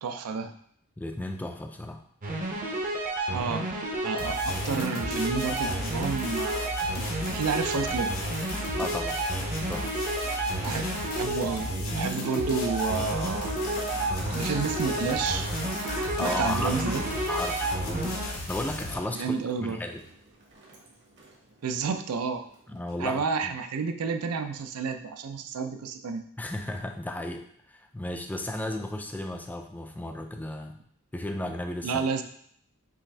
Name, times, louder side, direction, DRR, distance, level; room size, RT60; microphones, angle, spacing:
voice 1, 0.0-0.5 3.3-3.7 4.0-6.7 7.2-8.2 10.5-13.5 14.4-15.5 16.2-17.0 19.1-19.8 21.6-22.4 23.0-26.2 31.8-32.2, right 5 dB, 85° right, 7 dB, 0.4 m, -30 dB
voice 2, 1.0-2.0 8.8-9.2 9.7-10.0 16.2-16.8 17.3-18.2 18.5-20.0 22.7-23.5 26.4-30.8 31.1-32.0, left 1 dB, 10° left, 5 dB, 0.3 m, -34 dB
sound 1, 2.2-18.3, right 2 dB, 35° right, 0.6 m, -31 dB
sound 2, 4.2-19.0, left 2 dB, 90° left, 1.1 m, -36 dB
Bathtub (filling or washing) / Trickle dribble, 12.0-22.9, right 1 dB, 55° right, 1.1 m, -43 dB
5.7 x 2.5 x 3.2 m, 0.64 s
head